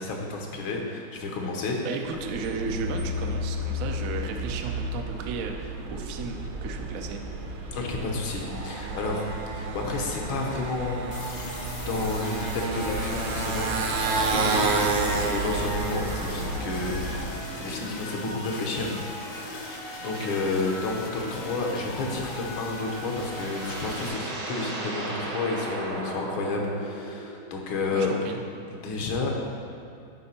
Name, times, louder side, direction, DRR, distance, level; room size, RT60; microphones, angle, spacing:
voice 1, 0.0-1.8 7.7-9.3 9.6-19.0 19.5-28.1 28.8-29.3, left 3 dB, 75° left, 0 dB, 1.8 m, -31 dB
voice 2, 1.8-7.2 20.0-20.3 27.9-28.4, right 5 dB, 90° right, 3 dB, 0.7 m, -34 dB
Motorcycle, 2.1-17.5, right 2 dB, 70° right, 1.3 m, -30 dB
sound 1, 11.1-24.1, left 2 dB, 55° left, 0.9 m, -39 dB
sound 2, 22.5-27.6, right 2 dB, 55° right, 0.9 m, -36 dB
10.5 x 4.4 x 4.3 m, 2.4 s
omnidirectional pair, 2.3 m